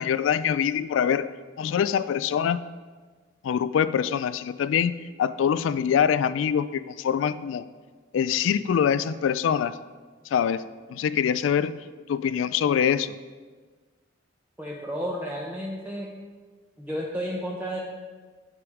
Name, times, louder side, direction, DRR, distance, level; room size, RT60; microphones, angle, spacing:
voice 1, 0.0-1.3 1.6-2.6 3.4-4.9 5.2-7.7 8.1-9.8 10.3-11.8 12.1-13.1, left 8 dB, 90° left, 16 dB, 0.3 m, -24 dB
voice 2, 14.6-16.1 16.8-17.8, equal, 10° right, -4 dB, 0.7 m, -32 dB
9.9 x 4.9 x 4.9 m, 1.4 s
head